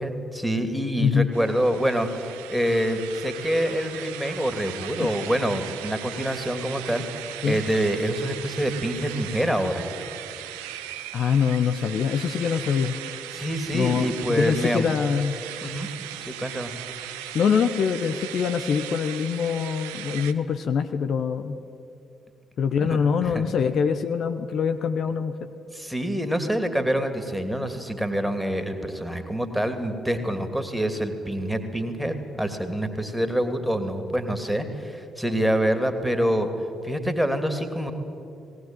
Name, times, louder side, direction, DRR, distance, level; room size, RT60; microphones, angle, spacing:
voice 1, 0.0-7.0 7.4-9.8 13.3-14.9 15.6-15.9 16.2-16.7 22.8-23.4 25.7-36.5 36.8-37.9, equal, 5° right, 7 dB, 2.7 m, -26 dB
voice 2, 1.0-1.3 5.0-5.1 7.4-7.6 11.1-13.0 13.7-15.4 17.3-21.6 22.6-25.5, left 6 dB, 55° left, 9 dB, 0.9 m, -24 dB
sound 1, 1.3-20.3, right 12 dB, 75° right, 0.8 m, -38 dB
19.0 x 17.5 x 9.1 m, 2.7 s
hypercardioid pair, 45°, 0 cm